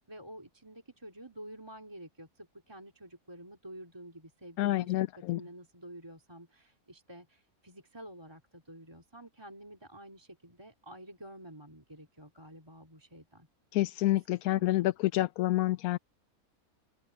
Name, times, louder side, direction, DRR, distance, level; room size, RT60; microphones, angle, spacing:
voice 1, 0.0-13.5 14.1-14.2 14.5-14.9, right 1 dB, 15° right, 3.3 m, -50 dB
voice 2, 4.6-5.4 13.7-16.0, left 16 dB, 90° left, 1.0 m, -28 dB
open air
omnidirectional pair, 1.5 m